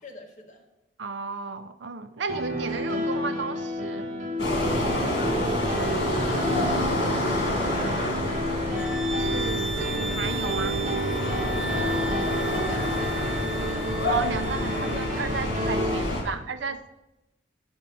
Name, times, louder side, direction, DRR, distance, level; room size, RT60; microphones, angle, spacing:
voice 1, 0.0-0.6 4.5-8.1 11.5-14.0, left 3 dB, 40° left, 1 dB, 1.4 m, -43 dB
voice 2, 1.0-4.1 9.1-10.8 14.1-16.9, right 4 dB, 70° right, 11 dB, 0.6 m, -33 dB
Piano, 2.3-16.0, equal, 40° right, 1.2 m, -30 dB
sound 1, 4.4-16.2, left 1 dB, 55° left, 2.6 m, -28 dB
sound 2, 8.7-15.2, right 2 dB, ahead, 1.3 m, -36 dB
10.0 x 5.3 x 6.9 m, 0.97 s
head